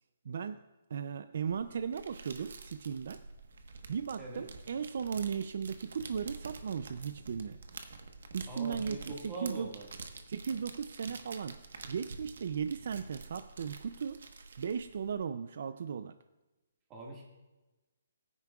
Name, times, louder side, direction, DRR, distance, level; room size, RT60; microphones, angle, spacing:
voice 1, 0.2-0.6 0.9-3.2 3.9-7.6 8.3-9.7 10.3-14.2 14.6-16.2, right 7 dB, 55° right, 11 dB, 0.4 m, -37 dB
sound 1, 1.5-15.1, right 4 dB, 70° right, 1.2 m, -48 dB
voice 2, 8.5-9.9 16.9-17.2, right 3 dB, 15° right, -2 dB, 1.8 m, -42 dB
21.5 x 9.6 x 2.4 m, 1.1 s
hypercardioid pair, 170°, 0 cm